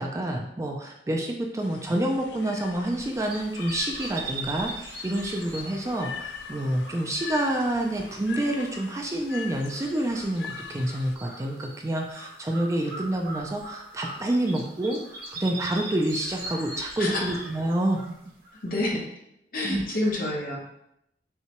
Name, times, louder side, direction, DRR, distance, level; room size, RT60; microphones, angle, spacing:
voice 1, 0.0-15.0 15.3-18.0 19.6-19.8, right 1 dB, 20° right, 1 dB, 0.4 m, -28 dB
sound 1, 1.6-11.2, left 7 dB, 70° left, 0.3 m, -42 dB
sound 2, 2.8-18.9, right 2 dB, 60° right, 1.0 m, -41 dB
voice 2, 17.0-17.4 18.6-19.0 19.5-20.6, left 1 dB, 55° left, -2 dB, 1.0 m, -28 dB
5.6 x 2.3 x 2.9 m, 0.78 s
head